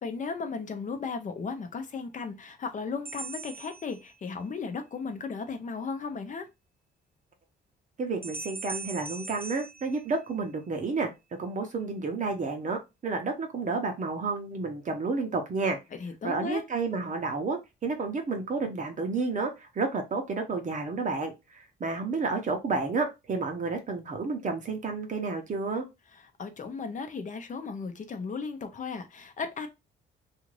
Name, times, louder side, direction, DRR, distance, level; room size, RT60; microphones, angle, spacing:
voice 1, 0.0-6.5 16.0-16.6 26.4-29.7, left 5 dB, 40° left, 0.7 m, -35 dB
sound 1, 3.1-4.6 8.2-10.7, right 3 dB, 10° right, 0.5 m, -41 dB
voice 2, 8.0-11.1 11.4-15.8 16.2-25.9, right 3 dB, 40° right, 0.8 m, -31 dB
2.5 x 2.5 x 3.1 m
cardioid pair, 90°, 20 cm